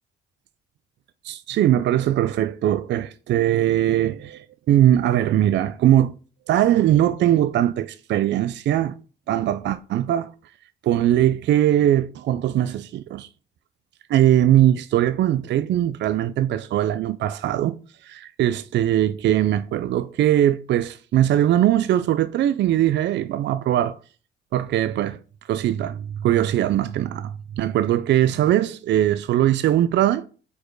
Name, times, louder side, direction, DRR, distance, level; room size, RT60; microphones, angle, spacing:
voice 1, 1.3-6.1 6.5-9.0 9.3-10.3 10.8-13.3 14.1-17.7 18.0-24.0 24.5-25.2 25.5-30.3, right 12 dB, 65° right, 0.4 m, -20 dB
4.9 x 4.4 x 4.6 m
cardioid pair, 90°, 20 cm